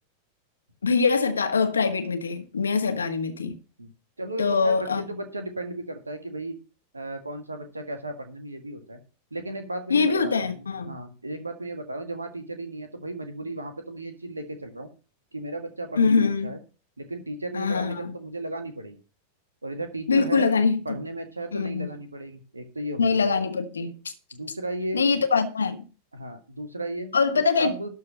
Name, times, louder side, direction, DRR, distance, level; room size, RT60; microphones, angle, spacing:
voice 1, 0.8-3.5 4.4-5.1 9.9-11.0 16.0-16.5 17.5-18.1 20.1-21.0 21.5-21.9 23.0-23.9 24.9-25.8 27.1-27.9, left 5 dB, 70° left, 1.5 m, -23 dB
voice 2, 4.2-6.6 6.9-9.0 9.3-14.9 15.3-16.6 17.0-19.0 19.6-20.5 20.9-23.3 24.3-25.0 26.1-27.1 27.6-27.9, right 1 dB, 80° right, 1.9 m, -35 dB
12.5 x 4.7 x 7.2 m
figure-of-eight pair, 90°, 0 cm